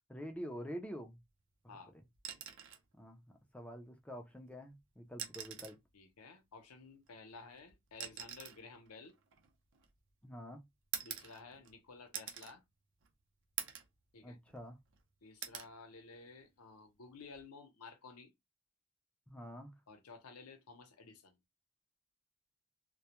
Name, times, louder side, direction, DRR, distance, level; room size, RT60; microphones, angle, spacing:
voice 1, 0.1-1.2 1.6-1.7 3.0-3.2 3.5-5.8 10.2-10.6 14.2-14.8 19.3-19.7, equal, 5° left, 0.4 m, -46 dB
sound 1, 2.2-2.9 4.3-4.4 5.1-5.9 7.0-10.1 10.9-11.8 12.1-12.6 13.0-13.1 13.6-14.0 14.4-15.0 15.4-15.7 17.2-17.4, right 9 dB, 55° right, 0.6 m, -45 dB
voice 2, 5.9-9.1 11.0-12.6 14.1-14.4 15.2-18.3 19.9-21.4, left 4 dB, 70° left, 0.7 m, -54 dB
2.2 x 2.1 x 2.9 m
head